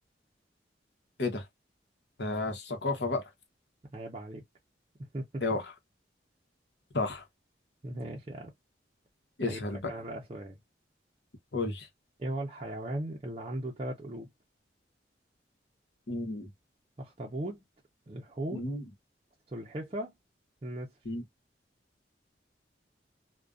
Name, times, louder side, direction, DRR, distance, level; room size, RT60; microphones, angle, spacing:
voice 1, 2.2-3.2 5.4-5.7 6.9-7.2 9.4-9.8 11.5-11.9 16.1-16.5 18.5-18.8 21.0-21.2, left 2 dB, 70° left, 0.9 m, -32 dB
voice 2, 3.9-4.4 5.1-5.4 7.8-8.5 9.5-10.6 12.2-14.3 17.0-17.6 18.1-18.7 19.5-20.1 20.6-20.9, right 1 dB, 30° right, 0.5 m, -37 dB
2.5 x 2.2 x 2.3 m
head